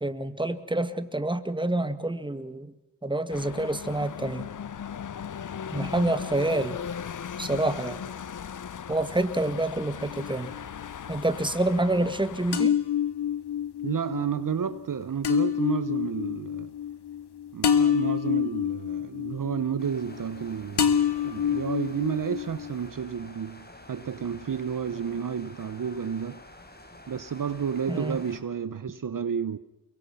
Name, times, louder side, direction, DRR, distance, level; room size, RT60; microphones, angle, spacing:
voice 1, 0.0-2.7 3.0-4.5 5.7-6.8 7.4-8.0 8.9-10.5 11.1-12.7 27.9-28.2, right 2 dB, 10° right, 1.9 m, -27 dB
sound 1, 3.3-12.6, left 7 dB, 50° left, 0.8 m, -38 dB
sound 2, 10.0-10.9 12.5-20.5 20.8-22.9, left 8 dB, 70° left, 2.1 m, -27 dB
voice 2, 13.8-16.7 17.5-26.4 27.1-29.6, right 7 dB, 50° right, 1.0 m, -31 dB
sound 3, 19.8-28.4, left 1 dB, 25° left, 4.2 m, -49 dB
24.5 x 23.0 x 5.8 m
cardioid pair, 65°, 41 cm